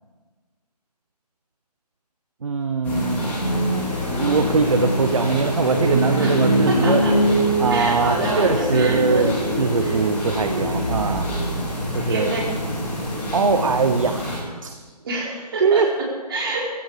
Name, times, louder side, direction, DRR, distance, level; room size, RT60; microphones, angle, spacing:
voice 1, 2.4-3.3 4.2-7.0 7.6-11.3 11.9-12.3 13.3-14.4 14.6-14.7 15.6-15.9, right 4 dB, 50° right, 7 dB, 1.0 m, -21 dB
sound 1, 2.8-14.4, equal, 10° left, 2.8 m, -23 dB
voice 2, 6.2-7.2 7.7-9.3 9.8-10.0 10.4-10.7 12.1-12.5 15.0-16.7, right 2 dB, 35° right, -4 dB, 4.6 m, -27 dB
16.0 x 15.5 x 5.0 m, 1.4 s
figure-of-eight pair, 160°, 21 cm